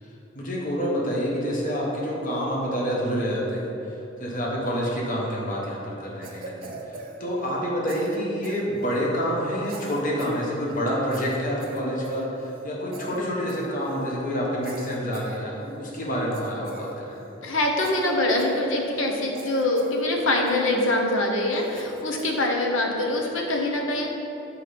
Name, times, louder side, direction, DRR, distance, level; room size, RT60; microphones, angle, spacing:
voice 1, 0.3-17.2, equal, 45° left, -4 dB, 1.3 m, -28 dB
Cough, 6.2-7.6 7.9-9.1 9.6-10.4 10.7-10.8 11.1-12.7 12.9-13.2 13.5-14.1 14.6-15.8 16.3-17.4 17.8-19.1 19.3-20.0 20.5-21.0 21.5-22.4, right 3 dB, 50° right, 0.7 m, -42 dB
voice 2, 17.4-24.1, left 1 dB, 85° left, 0 dB, 0.9 m, -24 dB
6.3 x 4.5 x 5.1 m, 2.9 s
head